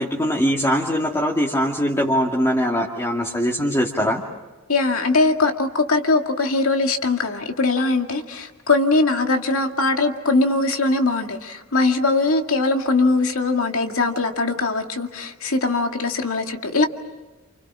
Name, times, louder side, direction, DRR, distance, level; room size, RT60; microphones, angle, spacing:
voice 1, 0.0-4.2, equal, 15° left, -2 dB, 2.2 m, -21 dB
voice 2, 4.7-16.9, left 3 dB, 75° left, 4 dB, 2.2 m, -21 dB
29.0 x 28.5 x 6.2 m, 1.2 s
head